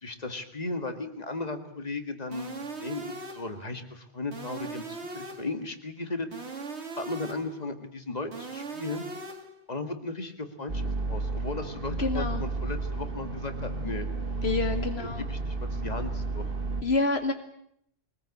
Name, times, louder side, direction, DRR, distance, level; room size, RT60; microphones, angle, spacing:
voice 1, 0.0-2.5 2.8-6.6 7.0-9.0 9.7-10.8 11.1-14.1 14.7-16.5, left 3 dB, 40° left, 7 dB, 2.1 m, -36 dB
sound 1, 2.3-3.6 4.3-5.6 6.3-7.6 8.3-9.6, right 3 dB, 80° right, 2.4 m, -39 dB
sound 2, 10.7-16.8, right 3 dB, 55° right, 2.0 m, -32 dB
voice 2, 12.0-12.4 14.4-15.2 16.8-17.3, left 3 dB, 70° left, 7 dB, 1.4 m, -27 dB
22.5 x 20.0 x 8.4 m, 0.72 s
omnidirectional pair, 1.1 m